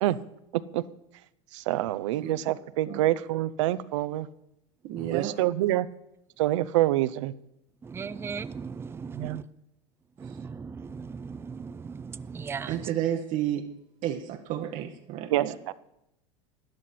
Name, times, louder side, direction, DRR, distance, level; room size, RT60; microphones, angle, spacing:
voice 1, 1.5-4.3 5.1-5.9 6.4-7.3 9.1-9.4 15.3-15.7, right 15 dB, 75° right, 17 dB, 0.5 m, -26 dB
voice 2, 4.8-5.4 12.7-13.7 14.0-15.5, right 11 dB, 50° right, 5 dB, 0.9 m, -31 dB
voice 3, 7.9-9.4 10.2-12.8, right 5 dB, 15° right, 15 dB, 0.4 m, -37 dB
12.5 x 10.0 x 4.2 m, 0.83 s
hypercardioid pair, 90°, 16 cm